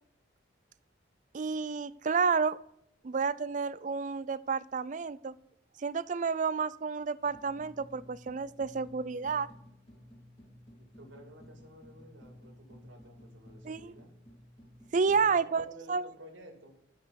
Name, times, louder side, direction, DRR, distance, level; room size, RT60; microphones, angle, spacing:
voice 1, 1.3-2.6 3.0-5.3 5.8-9.5 13.6-13.9 14.9-16.0, right 5 dB, 40° right, 17 dB, 0.4 m, -30 dB
sound 1, 7.2-15.4, left 1 dB, 35° left, 2.9 m, -54 dB
voice 2, 10.8-14.1 15.0-16.8, right 1 dB, 80° right, 1 dB, 2.5 m, -53 dB
12.0 x 6.7 x 5.2 m, 0.77 s
head